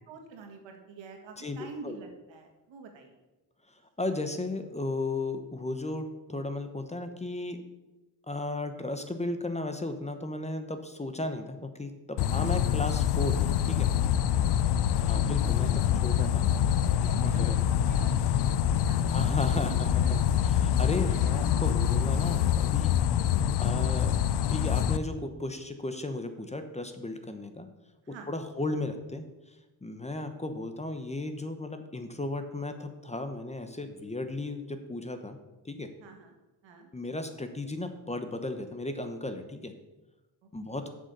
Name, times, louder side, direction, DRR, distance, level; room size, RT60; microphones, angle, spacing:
voice 1, 0.1-3.2 12.3-12.4 14.3-15.0 15.7-17.4 17.7-18.3 18.7-19.1 19.7-20.3 21.1-22.0 28.0-28.3 36.0-36.3 36.6-36.9 40.4-40.8, right 4 dB, 85° right, 3 dB, 1.9 m, -48 dB
voice 2, 4.0-7.6 8.3-13.9 15.0-15.7 16.0-16.5 17.2-17.6 19.1-20.2 20.6-22.9 23.6-24.2 24.5-27.7 28.3-29.2 29.8-35.4 35.6-35.9 36.9-39.7 40.5-40.9, left 2 dB, 15° left, 8 dB, 0.9 m, -35 dB
sound 1, 12.2-25.0, left 10 dB, 65° left, 0.6 m, -25 dB
7.5 x 6.7 x 6.7 m, 1.1 s
cardioid pair, 95°, 44 cm